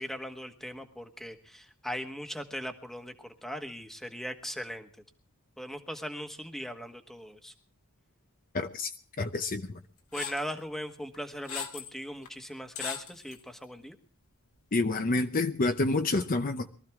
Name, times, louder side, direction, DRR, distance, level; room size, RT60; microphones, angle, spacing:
voice 1, 0.0-4.9 5.6-7.5 10.1-14.0, equal, ahead, 1.3 m, -39 dB
voice 2, 8.5-8.9 9.2-9.6 14.7-16.7, left 2 dB, 40° left, 0.7 m, -28 dB
sound 1, 10.1-10.5 11.1-11.9 12.3-12.4 12.8-13.4, left 7 dB, 65° left, 2.1 m, -38 dB
23.0 x 14.0 x 3.5 m
head